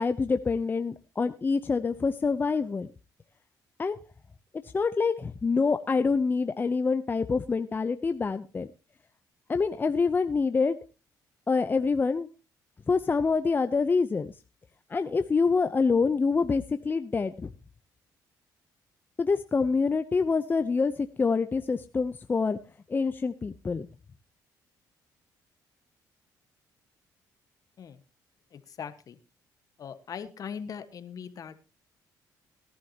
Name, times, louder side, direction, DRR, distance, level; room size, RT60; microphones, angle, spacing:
voice 1, 0.0-2.9 3.8-4.0 4.7-8.7 9.5-10.8 11.5-12.3 12.9-14.3 14.9-17.5 19.2-22.6 22.9-23.9, left 4 dB, 25° left, 10 dB, 0.6 m, -26 dB
voice 2, 28.5-29.2 29.8-31.6, left 7 dB, 55° left, 11 dB, 1.3 m, -40 dB
18.0 x 11.0 x 2.9 m, 0.31 s
cardioid pair, 100°, 7 cm